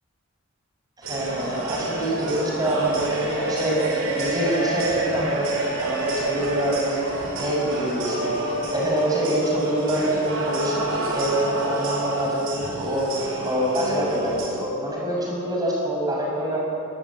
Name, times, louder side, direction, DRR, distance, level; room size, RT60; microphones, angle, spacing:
voice 1, 1.0-7.0 7.4-16.7, right 1 dB, 20° right, -3 dB, 6.6 m, -26 dB
sound 1, 1.0-14.5, right 2 dB, 80° right, 5.7 m, -28 dB
21.5 x 18.5 x 8.7 m, 2.8 s
head